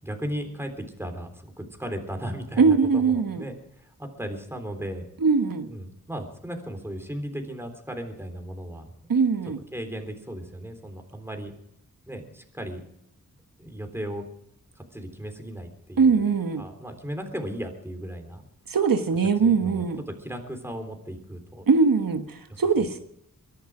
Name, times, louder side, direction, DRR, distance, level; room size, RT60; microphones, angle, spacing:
voice 1, 0.0-5.1 5.7-9.1 9.7-11.5 12.1-12.8 13.6-14.3 14.8-16.3 16.6-18.4 19.4-21.6 22.5-22.9, equal, 5° right, 5 dB, 3.6 m, -36 dB
voice 2, 2.6-3.4 5.2-5.7 9.1-9.6 16.0-16.6 18.7-20.0 21.7-23.0, right 5 dB, 75° right, 7 dB, 1.3 m, -21 dB
23.5 x 11.0 x 4.9 m, 0.73 s
wide cardioid pair, 80°, 34 cm